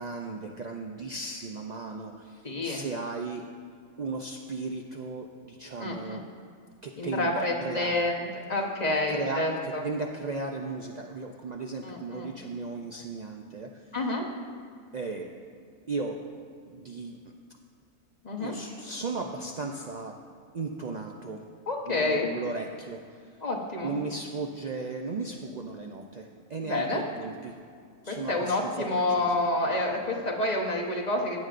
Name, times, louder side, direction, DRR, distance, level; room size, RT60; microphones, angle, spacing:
voice 1, 0.0-3.5 4.0-6.2 6.8-8.1 9.1-13.8 14.9-15.3 15.9-16.2 16.6-17.2 18.4-20.2 20.5-21.5 21.9-23.3 23.8-27.6 28.0-29.5 29.9-30.2, right 3 dB, 80° right, 2 dB, 0.3 m, -36 dB
voice 2, 2.4-2.8 5.8-6.2 7.0-9.8 11.8-12.3 13.9-14.3 18.2-18.5 21.7-22.4 23.4-23.9 26.6-27.0 28.1-31.4, left 2 dB, 35° left, 0 dB, 1.0 m, -28 dB
15.5 x 8.7 x 2.5 m, 2.2 s
omnidirectional pair, 1.4 m